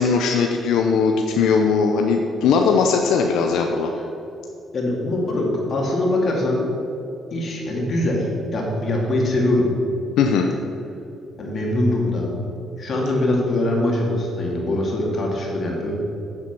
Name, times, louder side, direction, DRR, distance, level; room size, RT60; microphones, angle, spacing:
voice 1, 0.0-3.9 10.2-10.5, left 5 dB, 85° left, 3 dB, 0.6 m, -19 dB
voice 2, 4.7-6.6 7.3-9.8 11.4-12.3 12.8-15.9, left 1 dB, 50° left, -2 dB, 2.6 m, -22 dB
8.4 x 7.4 x 6.2 m, 2.7 s
cardioid pair, 90°, 0 cm